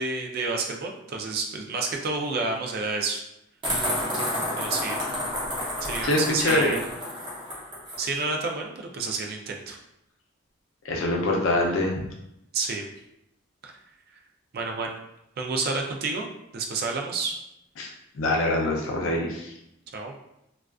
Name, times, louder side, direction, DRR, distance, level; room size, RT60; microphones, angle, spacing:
voice 1, 0.0-3.2 4.6-5.0 5.8-6.8 8.0-9.8 12.5-12.9 13.6-13.7 14.5-14.9 15.4-16.3 16.5-17.3 19.9-20.1, right 3 dB, 50° right, 1 dB, 0.4 m, -29 dB
sound 1, 3.6-8.0, left 1 dB, 25° right, 0.7 m, -30 dB
voice 2, 6.0-6.7 10.9-12.0 17.8-17.9 18.2-19.5, left 1 dB, 85° left, -1 dB, 0.5 m, -24 dB
2.3 x 2.3 x 2.3 m, 0.81 s
head